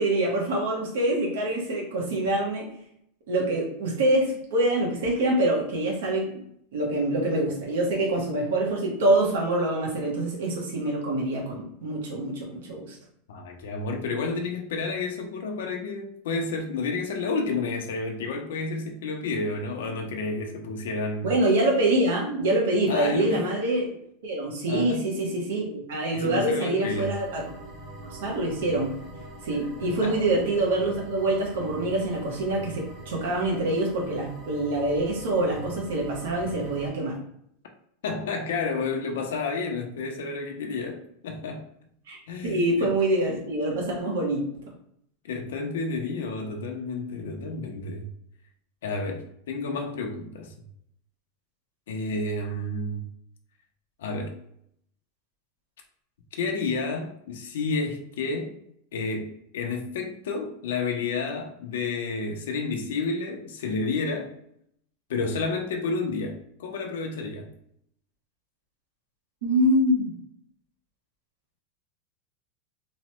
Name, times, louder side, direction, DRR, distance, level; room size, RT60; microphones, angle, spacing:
voice 1, 0.0-2.7 3.3-6.3 6.7-13.0 21.2-23.9 24.2-27.4 28.1-29.0 29.4-37.2 42.1-42.2 42.4-44.4 69.4-70.1, right 1 dB, 80° right, -1 dB, 0.8 m, -25 dB
voice 2, 13.3-21.3 22.9-23.5 24.7-25.0 26.1-27.1 29.8-30.2 38.0-41.7 42.3-42.9 45.2-48.1 48.8-50.5 51.9-53.0 54.0-54.4 56.4-58.6 58.9-64.3 65.1-67.5, left 3 dB, 90° left, 3 dB, 0.5 m, -30 dB
sound 1, 26.9-36.9, right 1 dB, 25° right, 1.0 m, -43 dB
3.0 x 2.1 x 2.9 m, 0.71 s
supercardioid pair, 170°, 0 cm